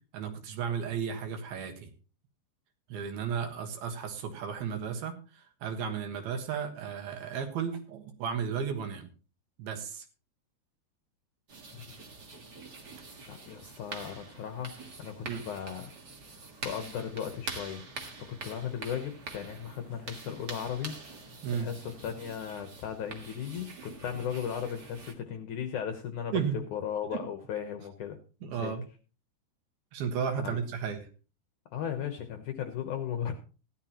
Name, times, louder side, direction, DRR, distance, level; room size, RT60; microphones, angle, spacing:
voice 1, 0.1-1.9 2.9-9.1 9.6-10.1 15.2-15.4 21.4-21.7 26.3-26.6 27.1-27.2 28.4-28.8 29.9-31.1, right 7 dB, 70° right, 6 dB, 3.3 m, -34 dB
sound 1, 11.5-25.1, right 3 dB, 50° right, 1.2 m, -45 dB
voice 2, 13.3-15.9 16.3-17.8 18.2-21.0 21.5-26.3 26.7-28.2 28.5-28.7 30.4-30.6 31.7-33.4, left 8 dB, 70° left, 6 dB, 1.9 m, -36 dB
16.0 x 12.0 x 3.0 m, 0.37 s
omnidirectional pair, 4.7 m